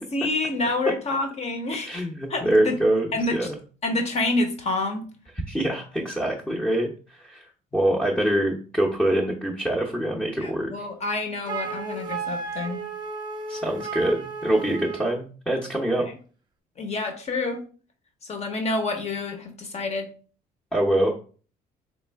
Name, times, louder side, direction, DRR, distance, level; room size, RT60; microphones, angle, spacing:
voice 1, 0.0-2.0 2.3-2.8 3.1-3.5 3.8-5.0 10.4-12.8 16.8-17.6 18.2-20.1, left 2 dB, 40° left, 5 dB, 1.0 m, -28 dB
voice 2, 1.8-3.6 5.5-10.9 13.5-16.0 20.7-21.1, right 1 dB, 5° left, -2 dB, 0.8 m, -25 dB
Wind instrument woodwind instrument, 11.5-15.2, right 4 dB, 25° right, 0.8 m, -33 dB
3.5 x 3.1 x 3.5 m, 0.39 s
cardioid pair, 110°, 17 cm